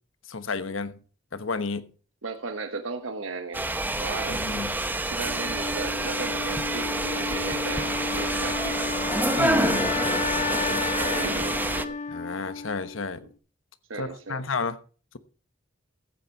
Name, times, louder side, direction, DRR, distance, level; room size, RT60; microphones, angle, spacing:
voice 1, 0.3-1.0 1.3-1.9 4.3-4.7 9.4-10.3 12.1-13.3 14.0-14.8, left 4 dB, 80° left, 1.1 m, -32 dB
voice 2, 2.2-3.6 4.0-4.4 5.1-8.9 10.6-11.9 13.9-14.4, right 3 dB, 85° right, 1.2 m, -36 dB
sound 1, 3.5-11.8, right 2 dB, 10° right, 0.8 m, -27 dB
Wind instrument woodwind instrument, 5.2-13.2, left 4 dB, 40° left, 0.8 m, -32 dB
14.5 x 8.7 x 4.6 m
head